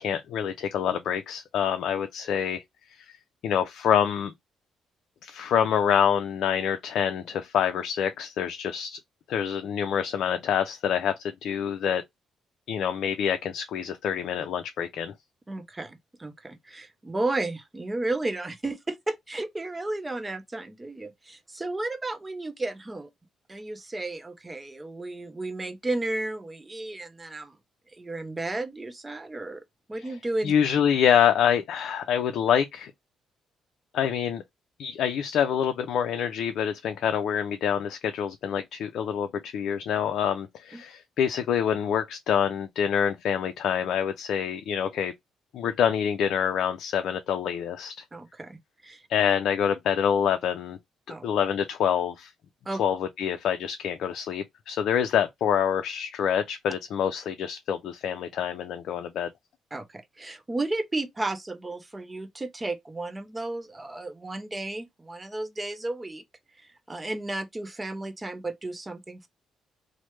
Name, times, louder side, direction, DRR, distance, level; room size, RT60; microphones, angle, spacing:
voice 1, 0.0-2.6 3.0-3.1 3.4-4.3 5.2-9.0 9.3-12.0 12.7-15.1 30.4-32.9 33.9-34.4 34.8-45.1 45.5-48.0 49.1-50.8 51.2-52.3 52.8-59.3, left 8 dB, 75° left, 0.4 m, -26 dB
voice 2, 15.5-23.1 23.5-27.6 27.9-29.6 29.9-30.5 40.7-40.8 48.1-49.0 51.1-51.2 52.7-52.8 59.7-66.2 66.6-69.3, right 2 dB, 20° right, 0.6 m, -33 dB
3.1 x 2.1 x 3.1 m
cardioid pair, 90°, 0 cm